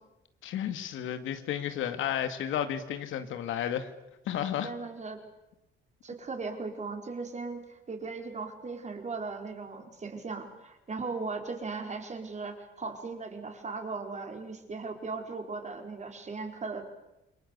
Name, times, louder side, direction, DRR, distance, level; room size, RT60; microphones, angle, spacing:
voice 1, 0.4-3.9 4.3-4.7, left 10 dB, 85° left, 2.2 m, -32 dB
voice 2, 4.6-5.2 6.0-16.9, right 4 dB, 35° right, 4.6 m, -38 dB
28.5 x 22.0 x 8.3 m
cardioid pair, 90°, 20 cm